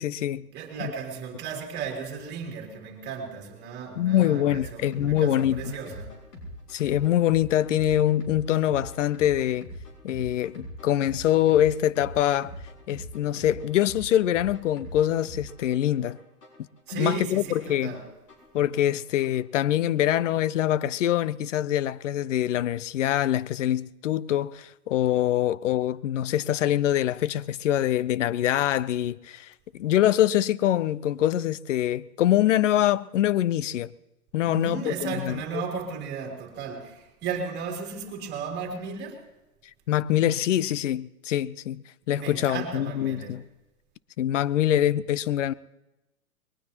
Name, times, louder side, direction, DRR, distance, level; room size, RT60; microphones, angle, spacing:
voice 1, 0.0-0.5 0.8-0.9 4.0-5.6 6.7-9.7 10.0-12.5 12.9-16.2 16.9-18.0 18.5-33.9 34.3-35.4 39.9-43.4 44.2-45.5, left 12 dB, 50° left, 0.6 m, -24 dB
voice 2, 0.5-6.2 16.9-18.1 34.5-39.2 42.1-43.4, right 6 dB, 20° right, 2.9 m, -35 dB
sound 1, 4.5-19.5, equal, 75° left, 5.8 m, -43 dB
21.5 x 19.0 x 2.9 m
hypercardioid pair, 140°, 48 cm